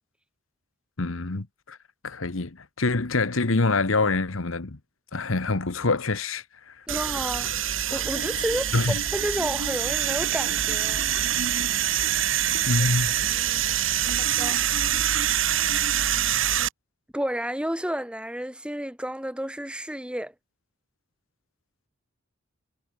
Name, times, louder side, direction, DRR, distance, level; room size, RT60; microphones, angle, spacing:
voice 1, 1.0-1.8 2.0-4.8 5.1-6.7 8.7-9.0 12.7-13.1, left 3 dB, 85° left, 1.3 m, -25 dB
voice 2, 6.9-7.5 7.9-8.7 9.1-11.1 13.3-13.8 14.2-14.6 17.1-20.3, equal, 5° right, 3.2 m, -31 dB
sound 1, 6.9-16.7, right 10 dB, 70° right, 2.4 m, -25 dB
head